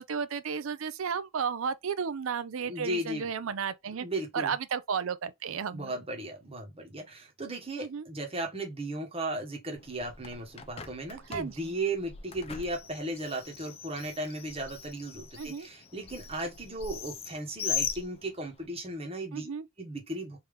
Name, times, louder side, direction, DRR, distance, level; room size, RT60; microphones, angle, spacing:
voice 1, 0.0-4.1 4.3-5.9 7.8-8.1 11.3-11.7 15.4-15.7 19.3-19.7, right 6 dB, 70° right, 0.5 m, -33 dB
voice 2, 2.7-3.3 3.9-4.5 5.7-19.5 19.8-20.4, right 1 dB, 30° right, 1.2 m, -36 dB
Bird, 9.8-18.7, left 7 dB, 30° left, 0.5 m, -40 dB
3.4 x 2.8 x 3.4 m
head